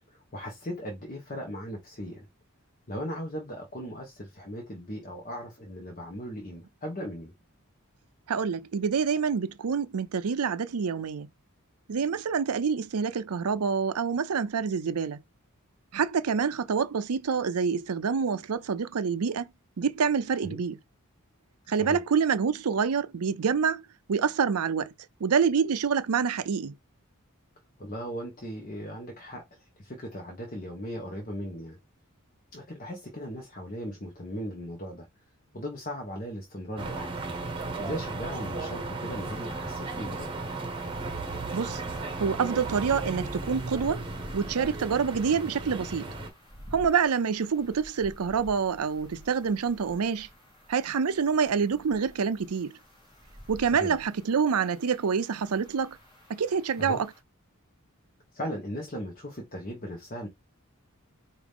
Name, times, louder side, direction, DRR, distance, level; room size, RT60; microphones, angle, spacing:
voice 1, 0.3-2.3 2.9-7.3 20.4-20.6 21.8-22.0 27.8-29.4 29.8-31.8 32.5-35.1 35.5-37.1 37.8-40.3 53.7-54.0 56.8-57.0 58.3-60.3, equal, 35° left, 1.1 m, -37 dB
voice 2, 8.3-11.3 11.9-15.2 15.9-19.5 19.8-20.8 21.7-23.8 24.1-24.9 25.2-26.7 41.5-41.8 42.2-44.0 44.3-46.1 46.7-50.3 50.7-52.7 53.5-56.0 56.3-57.1, right 6 dB, 85° right, 0.5 m, -27 dB
sound 1, 36.8-46.3, right 3 dB, 25° right, 1.1 m, -35 dB
sound 2, 39.1-57.2, equal, 20° left, 1.8 m, -51 dB
4.9 x 2.6 x 3.5 m
head